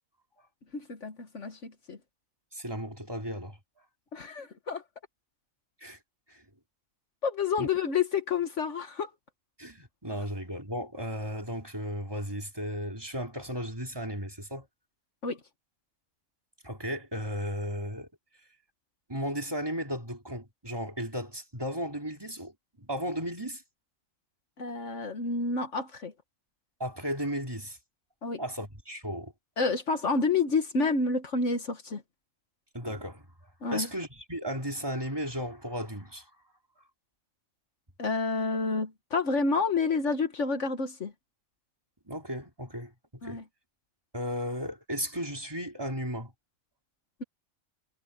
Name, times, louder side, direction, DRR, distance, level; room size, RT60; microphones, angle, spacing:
voice 1, 0.7-2.0 4.1-4.8 7.2-9.1 15.2-15.4 24.6-26.1 28.2-28.4 29.6-32.0 33.6-33.9 38.0-41.1 43.2-43.4, left 4 dB, 65° left, 1.7 m, -29 dB
voice 2, 2.5-3.6 5.8-6.0 6.3-6.4 7.6-7.7 9.6-14.7 16.6-18.1 19.1-23.6 26.8-27.8 28.4-29.3 32.7-33.3 33.7-36.3 42.1-43.4 44.1-46.3, equal, 15° right, 3.8 m, -35 dB
omnidirectional pair, 1.4 m